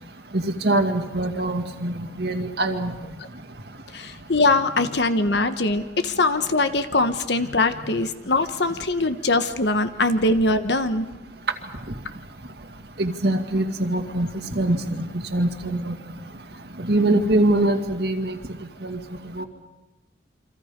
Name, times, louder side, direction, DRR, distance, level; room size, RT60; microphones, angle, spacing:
voice 1, 0.3-2.9 13.0-16.0 16.8-18.4 18.8-19.0 19.4-19.5, right 1 dB, 60° right, 5 dB, 2.1 m, -23 dB
voice 2, 3.9-11.1, left 2 dB, 65° left, 10 dB, 1.2 m, -22 dB
28.5 x 25.5 x 5.3 m, 1.0 s
head